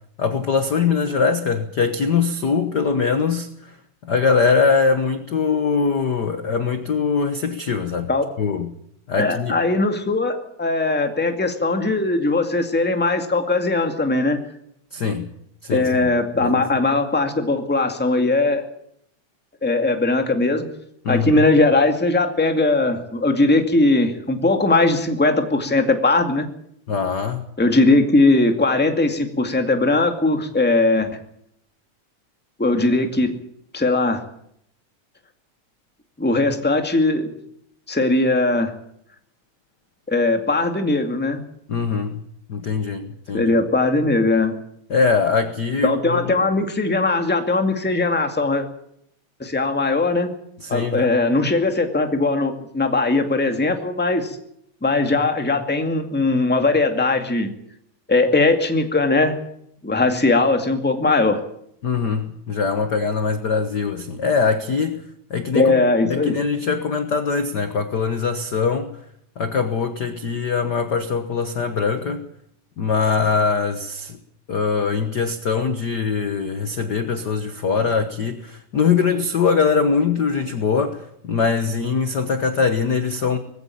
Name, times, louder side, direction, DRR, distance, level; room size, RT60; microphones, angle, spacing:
voice 1, 0.2-3.7 4.0-8.1 8.4-8.7 9.1-9.6 14.9-15.3 15.6-16.1 16.4-16.6 21.0-21.5 26.9-27.4 41.7-42.2 42.5-43.5 44.9-46.4 50.6-51.1 61.8-65.0 65.3-65.7 66.0-68.9 69.4-72.2 72.8-74.2 74.5-83.4, left 5 dB, 50° left, 9 dB, 1.2 m, -22 dB
voice 2, 9.2-14.4 15.7-18.6 19.6-20.6 21.1-26.4 27.6-31.1 32.6-33.3 33.7-34.2 36.2-37.3 37.9-38.7 40.1-41.4 43.3-44.5 45.8-48.6 49.4-50.3 50.7-54.4 54.8-57.5 58.1-59.4 59.8-61.4 65.5-66.4, left 2 dB, 5° left, 5 dB, 1.5 m, -19 dB
20.0 x 16.0 x 8.6 m, 0.71 s
omnidirectional pair, 3.7 m